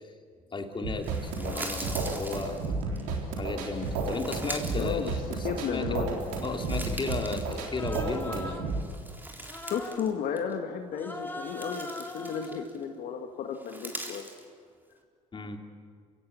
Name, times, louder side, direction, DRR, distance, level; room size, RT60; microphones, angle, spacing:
voice 1, 0.5-2.6 3.4-5.9 6.4-8.7 15.3-15.6, left 3 dB, 30° left, 4 dB, 2.7 m, -35 dB
sound 1, 0.8-8.8, right 3 dB, 90° right, 3.7 m, -32 dB
sound 2, 1.0-3.0 3.7-5.7 6.1-8.3 8.7-10.1 10.4-10.5 11.1-12.8 13.5-14.4, right 1 dB, 10° right, 3.7 m, -42 dB
voice 2, 4.7-6.1 9.6-14.3, left 7 dB, 65° left, 4 dB, 1.8 m, -33 dB
Human voice, 7.5-8.8 9.4-10.1 10.9-12.7, left 1 dB, 10° left, 2.0 m, -41 dB
28.0 x 16.0 x 8.6 m, 2.1 s
supercardioid pair, 70°, 16 cm